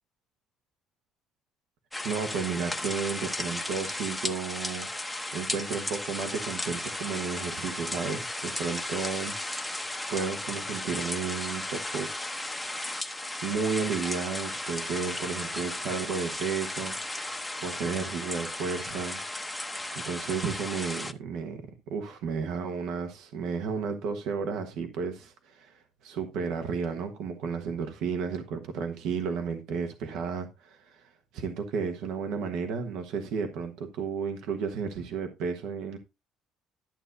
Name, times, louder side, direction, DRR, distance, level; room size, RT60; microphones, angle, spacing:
sound 1, 1.9-21.1, left 1 dB, ahead, 0.7 m, -35 dB
voice 1, 2.0-4.9 5.3-12.1 13.4-19.2 19.9-21.6 21.9-36.0, right 5 dB, 70° right, 1.1 m, -33 dB
12.0 x 7.9 x 2.6 m
cardioid pair, 170°, 0 cm